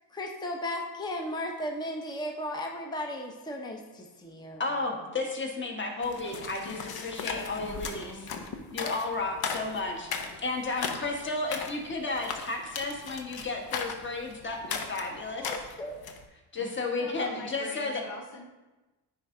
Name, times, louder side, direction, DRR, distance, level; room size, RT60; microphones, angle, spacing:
voice 1, 0.1-4.6 15.4-16.0, left 1 dB, 10° left, 2 dB, 0.7 m, -35 dB
voice 2, 4.6-8.2 8.7-15.5 16.5-18.0, left 3 dB, 25° left, 2 dB, 1.2 m, -33 dB
sound 1, 6.0-16.2, left 5 dB, 55° left, 0.8 m, -37 dB
voice 3, 6.6-8.3 16.6-18.5, left 3 dB, 85° left, 2 dB, 1.1 m, -45 dB
9.6 x 3.5 x 3.7 m, 1.1 s
cardioid pair, 105°, 44 cm